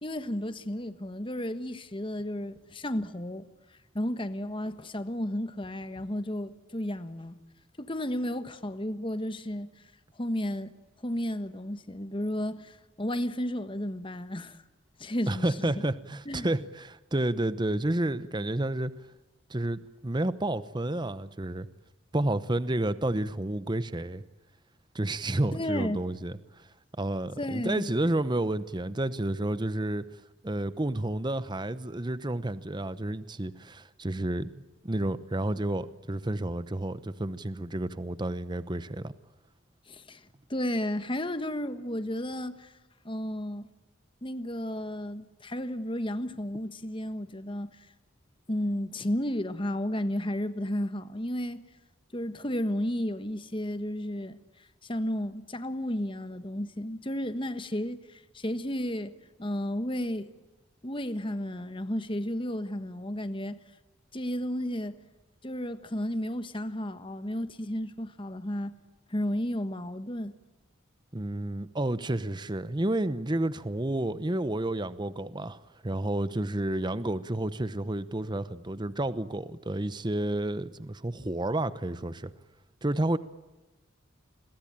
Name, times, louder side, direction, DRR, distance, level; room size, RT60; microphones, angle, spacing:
voice 1, 0.0-3.5 3.9-7.4 7.8-9.7 10.2-10.7 11.0-14.6 15.0-15.7 16.2-16.5 25.5-26.0 27.4-27.9 39.9-42.7 43.0-43.7 44.2-47.9 48.5-51.6 52.1-54.4 54.8-59.1 59.4-60.3 60.8-63.6 64.1-65.0 65.4-68.7 69.1-70.3, left 1 dB, 25° left, 1.4 m, -33 dB
voice 2, 15.3-18.9 19.5-21.7 22.1-24.2 24.9-26.7 27.0-30.1 30.4-39.1 71.1-82.3 82.8-83.2, right 1 dB, 20° right, 0.9 m, -30 dB
30.0 x 22.5 x 9.0 m
head